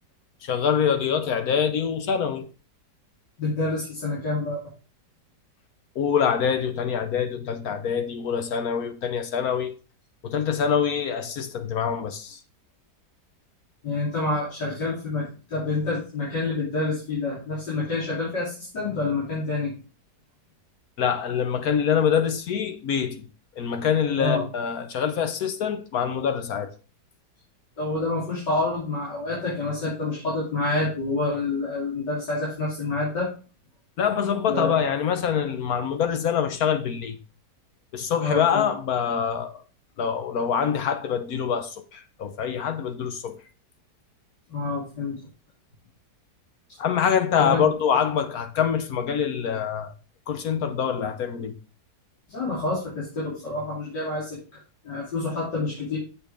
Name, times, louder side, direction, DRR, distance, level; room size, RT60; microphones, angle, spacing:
voice 1, 0.4-2.5 6.0-9.7 10.2-12.4 21.0-23.3 23.6-26.7 34.0-37.2 37.9-39.6 40.0-43.4 46.8-49.9 50.3-51.6, left 7 dB, 65° left, 1.2 m, -25 dB
voice 2, 3.4-4.6 13.8-19.7 24.2-24.4 27.8-33.3 34.5-34.8 38.2-38.7 44.5-45.2 47.4-47.7 52.3-56.0, left 2 dB, 85° left, 3.9 m, -28 dB
7.5 x 7.1 x 3.5 m
omnidirectional pair, 1.8 m